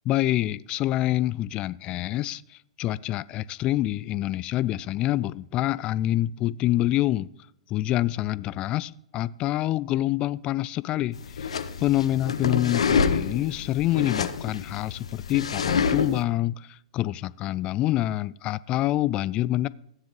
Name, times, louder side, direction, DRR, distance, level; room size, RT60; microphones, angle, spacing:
voice 1, 0.1-7.3 7.7-19.7, left 15 dB, 30° left, 20 dB, 0.3 m, -26 dB
sound 1, 11.1-16.2, left 6 dB, 65° left, 0.8 m, -27 dB
15.5 x 9.4 x 3.2 m, 0.72 s
figure-of-eight pair, 105°, 3 cm